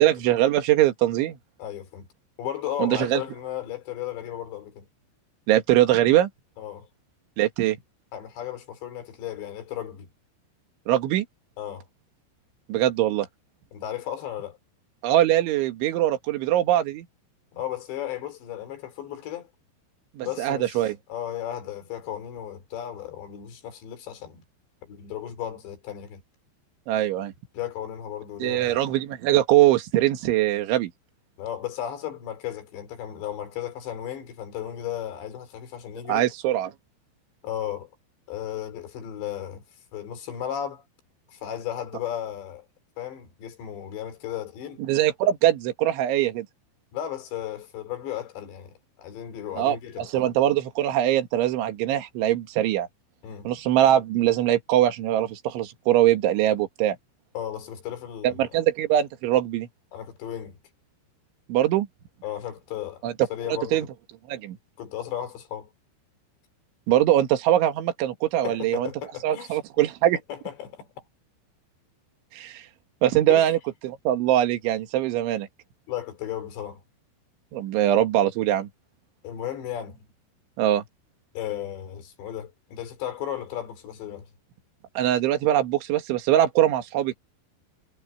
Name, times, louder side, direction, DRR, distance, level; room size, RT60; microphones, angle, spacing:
voice 1, 0.0-1.4 2.8-3.2 5.5-6.3 7.4-7.8 10.9-11.3 12.7-13.3 15.0-17.1 20.2-21.0 26.9-27.3 28.4-30.9 36.1-36.7 44.8-46.5 49.6-52.9 53.5-57.0 58.2-59.7 61.5-61.9 63.0-63.1 63.5-63.9 64.3-64.6 66.9-68.9 69.2-70.2 72.3-72.6 73.0-73.6 73.8-75.5 77.5-78.7 80.6-80.8 85.0-87.1, right 13 dB, 75° right, 4.2 m, -22 dB
voice 2, 1.6-2.1 2.4-4.9 6.6-6.9 8.1-10.1 11.6-11.9 13.7-14.6 17.5-19.5 20.2-24.4 24.8-26.2 27.5-28.8 31.4-36.3 37.4-37.9 38.3-39.6 39.9-40.8 41.3-42.7 43.0-44.8 46.9-50.3 53.2-53.5 57.3-58.7 59.9-60.6 62.2-63.9 64.8-65.7 68.4-69.6 70.3-70.9 73.3-73.5 75.9-76.8 79.2-80.1 81.4-84.3, left 11 dB, 65° left, 5.7 m, -35 dB
omnidirectional pair, 5.5 m